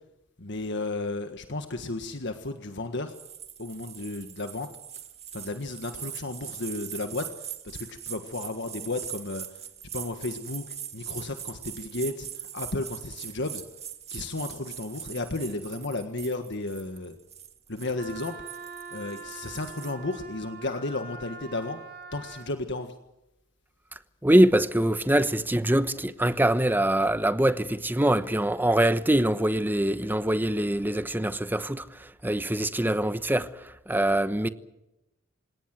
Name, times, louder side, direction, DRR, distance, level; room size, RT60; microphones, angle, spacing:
voice 1, 0.4-3.1 3.6-4.7 5.3-9.6 9.9-13.6 14.1-17.1 17.7-18.4 18.9-21.8 22.1-22.9, left 2 dB, 60° left, 1.7 m, -33 dB
sound 1, 3.1-19.9, right 10 dB, 30° right, 1.8 m, -41 dB
Wind instrument woodwind instrument, 18.0-22.5, right 4 dB, 50° right, 2.9 m, -43 dB
voice 2, 24.2-34.5, right 1 dB, 10° right, 1.0 m, -24 dB
28.5 x 18.0 x 7.7 m
head